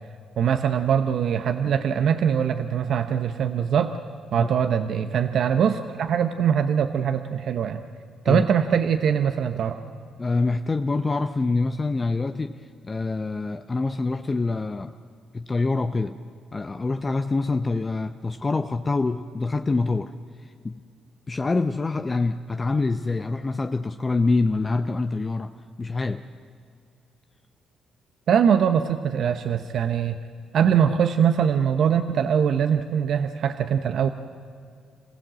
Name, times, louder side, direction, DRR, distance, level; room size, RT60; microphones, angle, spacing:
voice 1, 0.4-3.9 4.3-7.8 8.2-9.8 28.3-30.2 30.5-34.1, right 8 dB, 65° right, 8 dB, 0.9 m, -22 dB
voice 2, 10.2-12.6 12.8-14.9 15.3-16.2 16.5-20.1 20.4-20.8 21.3-25.5 25.8-26.2, left 3 dB, 25° left, 8 dB, 0.7 m, -25 dB
26.5 x 16.0 x 7.6 m, 2.3 s
cardioid pair, 90°, 0 cm